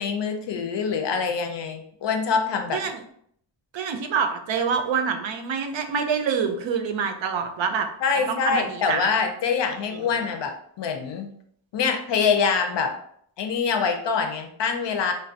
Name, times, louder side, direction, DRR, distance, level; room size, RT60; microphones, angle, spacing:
voice 1, 0.0-2.8 8.0-11.3 11.7-12.9 13.4-15.1, left 5 dB, 65° left, 4 dB, 0.5 m, -25 dB
voice 2, 3.7-7.9 8.3-9.1 9.9-10.0, right 6 dB, 70° right, 5 dB, 0.5 m, -26 dB
3.2 x 2.3 x 2.7 m, 0.65 s
wide cardioid pair, 165°, 47 cm